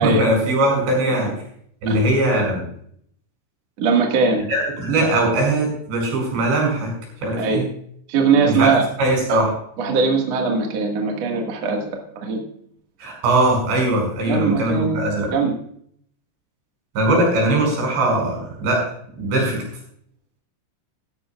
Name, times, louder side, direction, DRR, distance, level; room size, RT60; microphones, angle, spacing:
voice 1, 0.0-1.3 1.8-2.6 4.5-6.9 7.2-7.7 8.5-8.7 9.0-9.5 13.0-15.3 17.0-18.8 19.2-19.6, right 1 dB, 75° right, 0 dB, 7.7 m, -20 dB
voice 2, 3.8-4.4 7.4-7.6 8.1-8.8 9.3-9.4 9.8-11.8 12.2-12.4 14.3-15.5, right 4 dB, 50° right, 1 dB, 2.2 m, -20 dB
16.5 x 13.5 x 2.4 m, 0.66 s
omnidirectional pair, 5.1 m